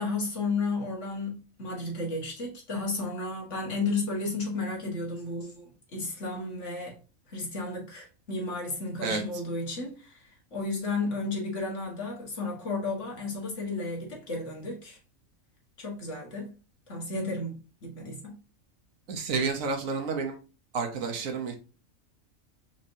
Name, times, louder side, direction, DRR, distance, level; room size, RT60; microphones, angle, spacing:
voice 1, 0.0-7.0 7.3-15.0 15.8-16.5 16.9-17.6 17.8-18.3, left 3 dB, 65° left, 1.9 m, -33 dB
voice 2, 19.1-20.4 20.7-21.5, right 4 dB, 80° right, 1.3 m, -30 dB
5.4 x 3.2 x 2.7 m
omnidirectional pair, 1.4 m